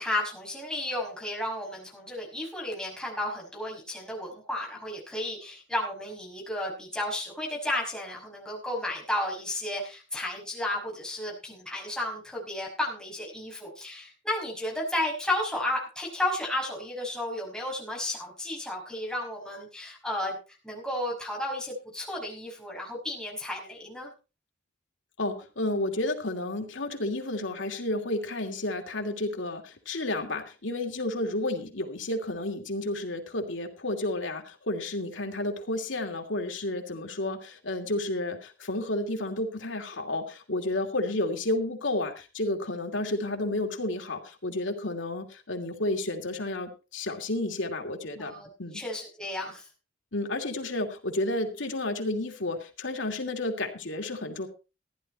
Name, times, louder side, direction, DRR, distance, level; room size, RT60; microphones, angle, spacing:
voice 1, 0.0-20.4 20.6-24.1 48.2-48.5 48.7-49.7, left 1 dB, 5° left, -2 dB, 5.6 m, -33 dB
voice 2, 25.2-48.3 48.6-48.8 50.1-54.5, left 2 dB, 80° left, 4 dB, 2.8 m, -31 dB
15.0 x 11.0 x 4.3 m, 0.31 s
head